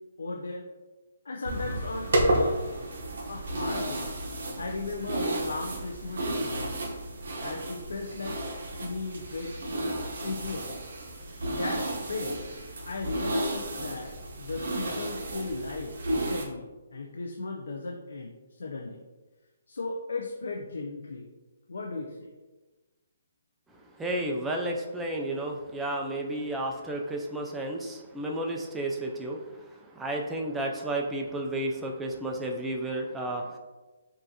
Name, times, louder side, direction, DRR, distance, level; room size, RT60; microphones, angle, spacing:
voice 1, 0.2-0.6 1.2-2.7 3.3-4.1 4.6-6.7 7.4-8.4 8.8-9.5 10.2-10.7 11.5-12.4 12.9-19.0 19.7-21.3 21.7-22.3, left 3 dB, 80° left, 1 dB, 0.5 m, -36 dB
Brushing Hair, 1.4-16.5, right 1 dB, 70° right, 0.9 m, -32 dB
voice 2, 24.0-33.6, right 1 dB, 10° right, 0 dB, 0.3 m, -32 dB
5.2 x 2.5 x 2.7 m, 1.2 s
hypercardioid pair, 155°, 0 cm